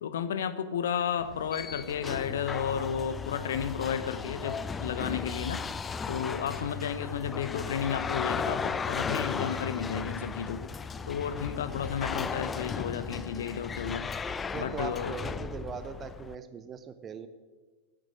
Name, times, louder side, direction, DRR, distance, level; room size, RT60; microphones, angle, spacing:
voice 1, 0.0-5.6 6.1-10.7 11.1-14.1 14.6-15.1, left 8 dB, 60° left, 12 dB, 1.0 m, -32 dB
sound 1, 1.2-16.3, left 5 dB, 20° left, 0.4 m, -36 dB
voice 2, 14.3-17.3, right 6 dB, 25° right, 11 dB, 0.8 m, -40 dB
9.1 x 8.7 x 9.7 m, 1.4 s
figure-of-eight pair, 90°, 0 cm